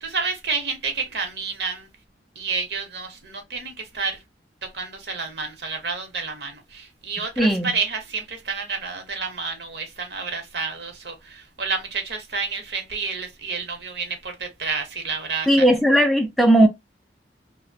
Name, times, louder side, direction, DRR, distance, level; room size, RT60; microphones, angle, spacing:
voice 1, 0.0-1.9 2.4-4.2 4.6-15.6, right 4 dB, 65° right, 0.8 m, -30 dB
voice 2, 7.4-7.7 15.5-16.7, right 1 dB, ahead, 0.3 m, -17 dB
2.7 x 2.0 x 2.5 m
head